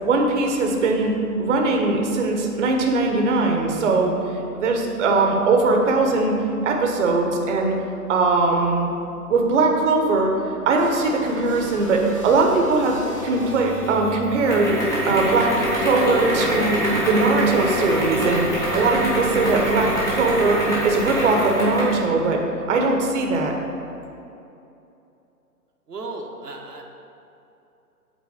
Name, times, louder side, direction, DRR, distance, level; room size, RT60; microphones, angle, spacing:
voice 1, 0.0-1.1 1.4-4.1 4.5-6.3 6.6-7.7 8.1-8.9 9.3-13.0 13.2-14.7 15.1-16.8 17.1-18.5 18.7-22.4 22.7-23.5, right 3 dB, 50° right, 1 dB, 1.1 m, -20 dB
sound 1, 10.8-14.2, equal, 25° left, 0.4 m, -37 dB
sound 2, 13.2-22.0, equal, 5° left, 1.4 m, -25 dB
voice 2, 25.9-26.8, right 2 dB, 90° right, 0 dB, 1.3 m, -35 dB
8.4 x 3.9 x 6.4 m, 2.8 s
hypercardioid pair, 140°, 47 cm